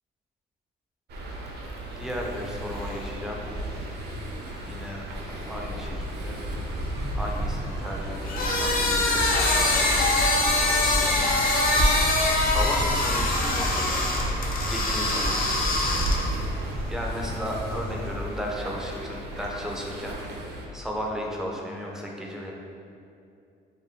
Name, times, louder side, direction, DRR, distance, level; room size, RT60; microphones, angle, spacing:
sound 1, 1.1-20.7, right 1 dB, 55° right, 0.5 m, -38 dB
sound 2, 1.1-19.3, equal, 80° right, 0.9 m, -34 dB
voice 1, 1.9-3.4 4.6-5.0 5.4-6.4 7.1-10.2 10.7-11.4 12.1-13.9 14.7-15.9 16.9-22.5, equal, 5° right, -2 dB, 0.4 m, -35 dB
sound 3, 8.2-16.4, left 2 dB, 45° left, 0.5 m, -23 dB
2.6 x 2.2 x 3.3 m, 2.5 s
cardioid pair, 90°, 20 cm